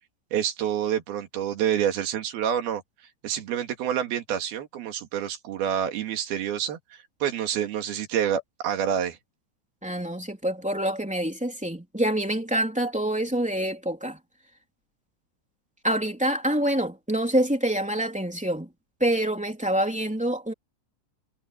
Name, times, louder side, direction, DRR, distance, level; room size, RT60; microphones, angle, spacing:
voice 1, 0.3-2.8 3.2-6.8 7.2-9.2, right 9 dB, 60° right, 3.7 m, -27 dB
voice 2, 9.8-14.2 15.8-18.7 19.0-20.5, right 1 dB, ahead, 2.4 m, -26 dB
omnidirectional pair, 5.3 m